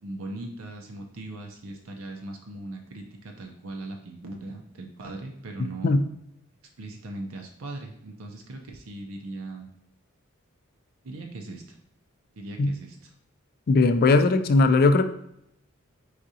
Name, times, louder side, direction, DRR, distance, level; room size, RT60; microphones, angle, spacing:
voice 1, 0.0-5.9 6.8-9.7 11.0-11.8 12.3-13.1, right 2 dB, 70° right, 2 dB, 0.6 m, -39 dB
voice 2, 13.7-15.0, left 3 dB, 45° left, 9 dB, 0.3 m, -19 dB
4.9 x 3.6 x 2.8 m, 0.77 s
head